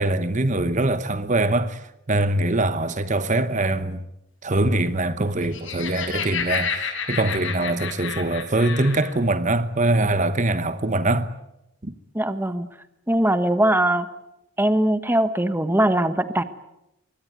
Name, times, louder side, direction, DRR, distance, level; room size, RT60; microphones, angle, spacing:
voice 1, 0.0-4.0 4.4-11.3 11.8-11.9, right 2 dB, 35° right, 1.1 m, -23 dB
Laughter, 5.3-9.1, left 6 dB, 60° left, 6.8 m, -30 dB
voice 2, 12.1-12.7 13.1-14.1 14.6-16.4, right 1 dB, 10° right, 1.2 m, -21 dB
26.0 x 23.5 x 9.4 m
head